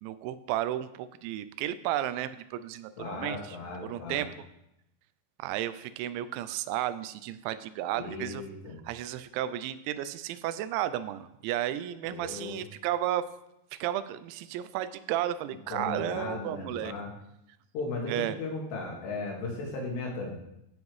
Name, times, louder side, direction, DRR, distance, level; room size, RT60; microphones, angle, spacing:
voice 1, 0.0-3.6 3.8-4.5 5.4-8.5 8.9-13.3 13.8-16.9 18.1-18.4, right 12 dB, 90° right, 13 dB, 2.9 m, -33 dB
voice 2, 3.0-4.3 7.9-8.8 12.0-12.6 15.7-17.1 17.7-20.3, left 3 dB, 75° left, -1 dB, 4.0 m, -36 dB
14.5 x 7.0 x 3.2 m, 0.84 s
omnidirectional pair, 5.1 m